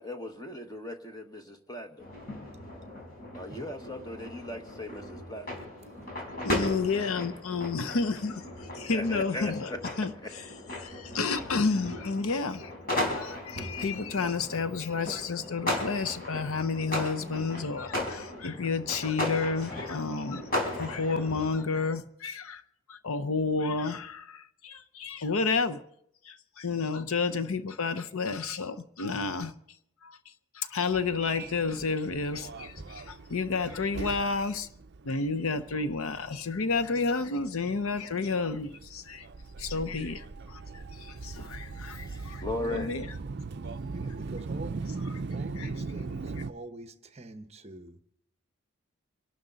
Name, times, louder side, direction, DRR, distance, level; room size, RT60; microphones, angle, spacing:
voice 1, 0.0-2.0 3.3-5.6 8.9-10.3 42.0-42.9, left 1 dB, 15° left, 1.3 m, -38 dB
sound 1, 2.0-21.7, left 1 dB, 40° left, 4.3 m, -36 dB
voice 2, 6.4-9.7 10.0-10.4 10.8-12.7 13.1-20.5 20.8-22.6 22.9-25.8 26.2-29.5 30.0-30.2 30.5-34.7 35.0-39.3 39.6-42.4 42.7-43.1 45.6-45.7, left 4 dB, 75° left, 0.7 m, -31 dB
Subway metro underground, 30.9-46.5, right 4 dB, 50° right, 0.5 m, -40 dB
voice 3, 43.9-44.9 45.3-48.0, right 1 dB, 30° right, 0.9 m, -45 dB
25.5 x 12.0 x 4.0 m
head